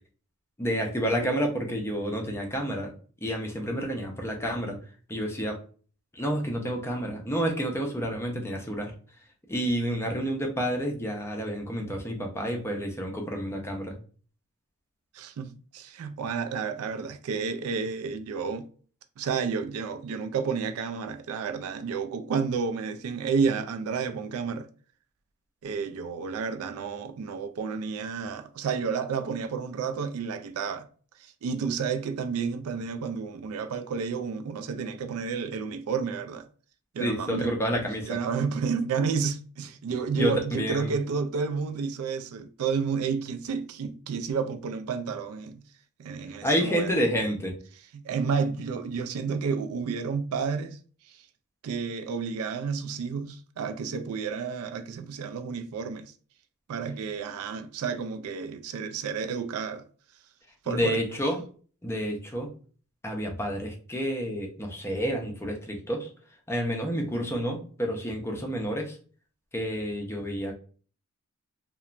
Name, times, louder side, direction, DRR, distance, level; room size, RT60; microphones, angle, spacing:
voice 1, 0.6-2.9 3.2-4.8 5.1-5.6 6.1-8.9 9.5-14.0 37.0-38.1 40.1-40.9 46.4-47.5 60.7-61.4 61.8-62.5 63.0-66.1 66.5-69.0 69.5-70.5, equal, 10° left, 0.4 m, -29 dB
voice 2, 15.1-18.7 19.2-24.7 25.6-30.9 31.4-36.5 36.9-37.6 38.1-45.7 46.0-46.9 47.9-50.8 51.1-51.2 51.6-56.1 56.7-59.8 60.6-61.0, right 5 dB, 70° right, 0.3 m, -31 dB
2.9 x 2.1 x 2.4 m
head